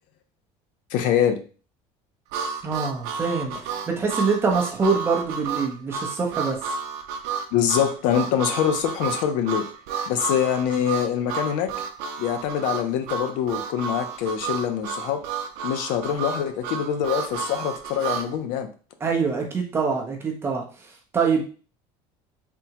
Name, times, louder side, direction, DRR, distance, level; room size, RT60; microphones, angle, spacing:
voice 1, 0.9-1.4 7.5-9.6 10.1-11.7 12.2-15.2 15.6-18.7, left 9 dB, 65° left, 7 dB, 0.5 m, -24 dB
Harmonica, 2.3-18.3, right 6 dB, 80° right, 0.4 m, -31 dB
voice 2, 2.6-6.6 19.0-21.5, right 5 dB, 15° right, 1 dB, 0.5 m, -25 dB
3.5 x 2.0 x 2.8 m, 0.37 s
cardioid pair, 175°, 14 cm